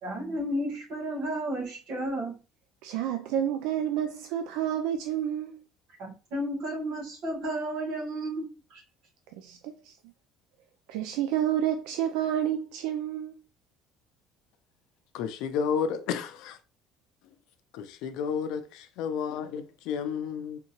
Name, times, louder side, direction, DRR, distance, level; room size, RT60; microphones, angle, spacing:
voice 1, 0.0-2.4 6.0-8.8, right 1 dB, 60° right, 1.7 m, -33 dB
voice 2, 2.8-5.6 9.4-10.0 10.9-13.3, right 10 dB, 85° right, 0.3 m, -29 dB
voice 3, 15.1-16.6 17.7-20.6, left 7 dB, 70° left, 0.5 m, -31 dB
3.6 x 2.7 x 2.9 m
cardioid pair, 155°, 0 cm